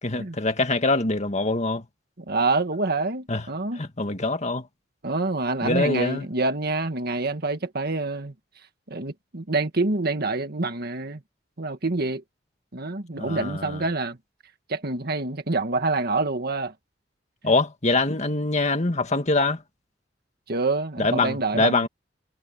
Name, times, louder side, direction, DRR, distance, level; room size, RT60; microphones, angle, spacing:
voice 1, 0.0-1.8 3.3-3.4 3.8-4.7 5.6-6.3 13.2-13.8 17.4-19.6 21.0-21.9, left 3 dB, 40° left, 2.0 m, -24 dB
voice 2, 2.3-3.8 5.0-8.3 8.9-11.2 11.6-12.2 12.7-14.2 14.7-16.7 20.5-21.9, right 3 dB, 55° right, 1.7 m, -26 dB
head